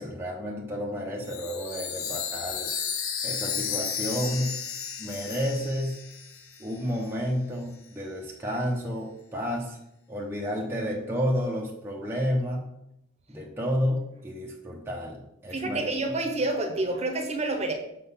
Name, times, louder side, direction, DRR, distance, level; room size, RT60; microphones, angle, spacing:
voice 1, 0.0-2.7 3.2-4.6 5.0-6.0 6.6-9.8 10.1-12.7 13.3-15.9, equal, 10° right, -2 dB, 0.8 m, -31 dB
Chime, 1.2-6.8, left 7 dB, 80° left, 0.9 m, -33 dB
voice 2, 15.5-17.7, right 2 dB, 30° right, 4 dB, 1.0 m, -28 dB
6.5 x 3.9 x 5.6 m, 0.82 s
head